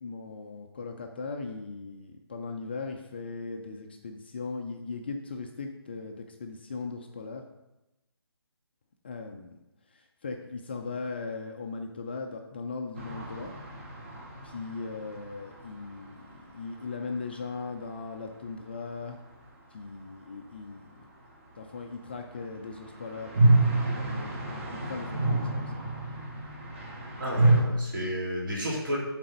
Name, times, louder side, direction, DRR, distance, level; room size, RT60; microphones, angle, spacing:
voice 1, 0.0-7.4 9.0-9.6 9.9-13.5 14.4-19.2 19.7-20.8 21.6-25.7, left 4 dB, 25° left, 3 dB, 0.4 m, -38 dB
sound 1, 13.0-16.8 17.0-17.1 17.3-17.4 22.4-27.6, right 2 dB, 30° right, 1.0 m, -28 dB
voice 2, 27.2-29.0, equal, 50° right, -3 dB, 2.3 m, -31 dB
7.5 x 4.0 x 5.2 m, 0.96 s
figure-of-eight pair, 150°, 14 cm